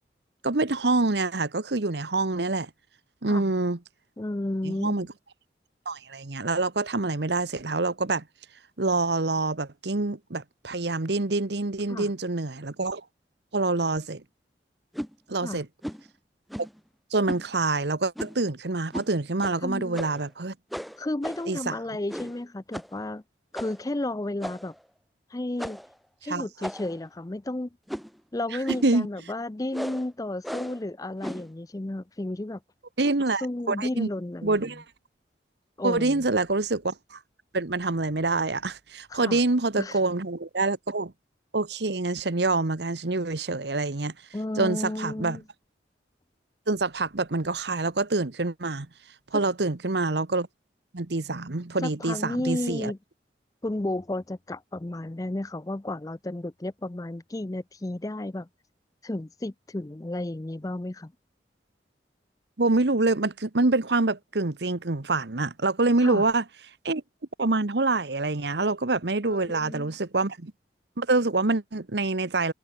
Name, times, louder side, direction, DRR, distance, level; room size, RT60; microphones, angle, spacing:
voice 1, 0.4-2.7 3.2-3.8 4.6-5.1 5.9-8.2 8.8-13.0 13.5-14.2 15.3-15.7 17.1-20.5 21.5-21.8 26.3-26.4 28.8-29.1 33.0-34.1 34.4-34.8 35.8-37.2 37.5-41.1 41.5-44.1 44.6-45.4 46.7-48.9 49.3-50.5 50.9-52.9 62.6-66.4 66.8-67.0 67.4-70.5 71.0-72.5, right 3 dB, 70° right, 1.2 m, -26 dB
voice 2, 4.2-5.1 11.9-12.1 15.4-15.6 19.6-20.0 21.0-23.2 23.5-24.7 25.3-25.8 26.2-27.7 28.3-32.6 33.4-34.7 35.8-36.3 39.1-39.4 39.8-40.0 44.3-45.4 49.3-49.4 51.8-53.0 53.6-58.5 59.0-61.1 66.0-66.3 69.3-69.9, left 1 dB, 20° left, 0.5 m, -32 dB
sound 1, 14.9-15.1 15.8-16.1 16.5-16.8 17.3-17.5 18.1-18.4 18.9-19.1 19.4-19.5 19.9-20.3 20.7-21.6 22.1-22.4 22.7-23.0 23.5-23.9 24.4-24.8 25.6-25.9 26.6-27.0 27.9-28.2 28.7-28.9 29.7-30.1 30.4-30.8 31.2-31.5, equal, ahead, 1.8 m, -36 dB
head